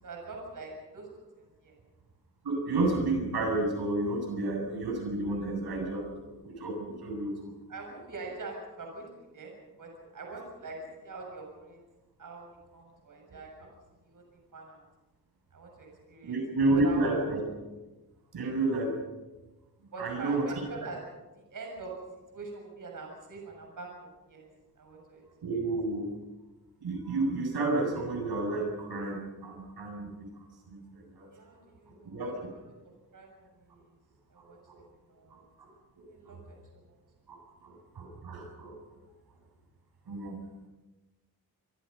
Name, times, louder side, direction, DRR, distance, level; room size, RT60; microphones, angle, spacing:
voice 1, 0.0-1.1 1.4-1.7 7.7-9.0 9.3-9.5 9.8-11.8 12.2-12.5 12.7-13.7 14.1-14.8 15.5-16.4 16.7-17.0 18.4-18.5 19.9-21.0 21.5-21.9 22.3-24.5 24.8-25.2 25.5-25.6 31.3-32.4 33.1-33.5 34.3-34.6 35.1-35.4 36.1-36.8, right 3 dB, 55° right, 1 dB, 7.1 m, -44 dB
voice 2, 2.4-7.4 16.2-17.4 18.3-18.9 20.0-20.5 25.4-26.1 26.8-30.3 30.7-31.3 32.0-32.3 34.4-34.8 35.3-35.7 36.0-36.4 37.3-38.7 40.1-40.5, right 2 dB, 80° right, 1 dB, 7.7 m, -31 dB
26.5 x 25.5 x 5.5 m, 1.1 s
wide cardioid pair, 125°, 38 cm